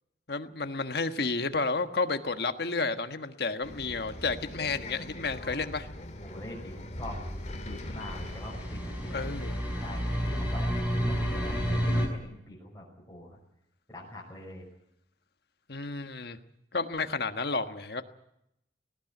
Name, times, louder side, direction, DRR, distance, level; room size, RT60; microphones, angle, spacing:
voice 1, 0.3-5.9 9.1-9.6 15.7-16.4 16.7-18.0, left 4 dB, 65° left, 8 dB, 1.4 m, -31 dB
Bus, 3.6-12.0, left 1 dB, 40° left, 2.4 m, -42 dB
voice 2, 6.2-7.2 7.6-9.3 9.8-13.4 13.9-14.7, left 1 dB, 15° left, -6 dB, 6.1 m, -44 dB
sound 1, 7.3-12.1, equal, 10° right, 5.6 m, -31 dB
18.5 x 18.5 x 9.3 m, 0.81 s
head